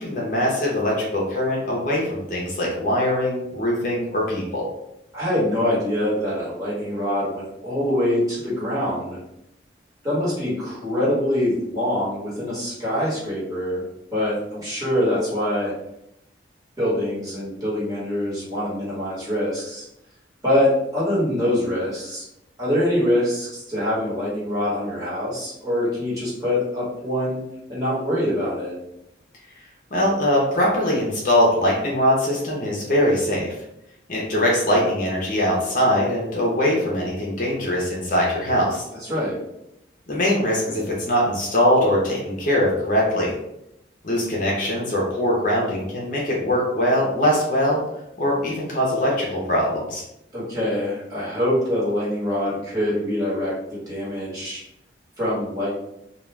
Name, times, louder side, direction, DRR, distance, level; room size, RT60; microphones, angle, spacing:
voice 1, 0.0-4.7 29.9-33.5 34.1-38.8 40.1-43.3 44.0-47.8 48.2-50.0, equal, 45° left, -4 dB, 0.6 m, -22 dB
voice 2, 5.1-9.2 10.0-13.8 14.1-15.7 16.8-19.9 20.4-22.2 22.6-27.4 27.7-28.7 39.0-39.4 50.3-54.6 55.2-55.7, left 1 dB, 20° right, -9 dB, 1.2 m, -24 dB
2.3 x 2.3 x 3.2 m, 0.82 s
head